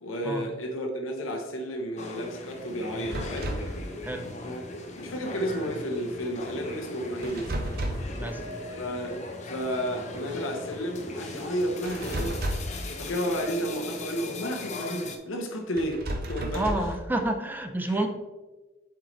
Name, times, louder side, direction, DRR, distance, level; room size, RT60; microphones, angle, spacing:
voice 1, 0.0-3.6 4.4-4.6 5.0-7.6 8.7-12.4 13.0-16.0 16.3-16.9 17.9-18.0, equal, 90° left, 2 dB, 0.9 m, -32 dB
sound 1, 2.0-15.2, left 2 dB, 35° left, 0.7 m, -40 dB
sound 2, 2.4-12.3, equal, 15° left, 1.0 m, -45 dB
sound 3, 3.0-3.8 7.2-8.2 11.9-12.8 15.8-17.0, right 1 dB, 50° right, 0.7 m, -32 dB
voice 2, 16.5-18.1, right 1 dB, 10° right, 5 dB, 0.4 m, -29 dB
7.9 x 4.7 x 3.1 m, 1.2 s
head